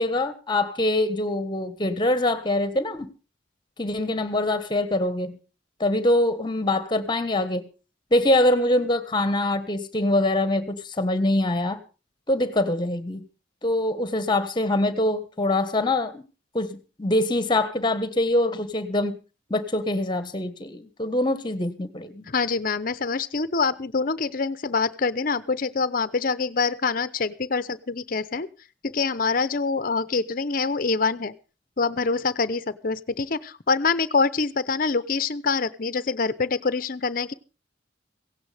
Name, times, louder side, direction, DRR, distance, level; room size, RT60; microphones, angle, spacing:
voice 1, 0.0-3.1 3.8-5.4 5.8-7.7 8.1-11.8 12.3-13.3 13.6-16.2 16.5-19.2 19.5-22.3, left 1 dB, 25° left, 1.3 m, -24 dB
voice 2, 22.3-28.5 28.9-31.3 31.8-37.3, left 4 dB, 50° left, 0.7 m, -25 dB
16.5 x 16.0 x 3.4 m
head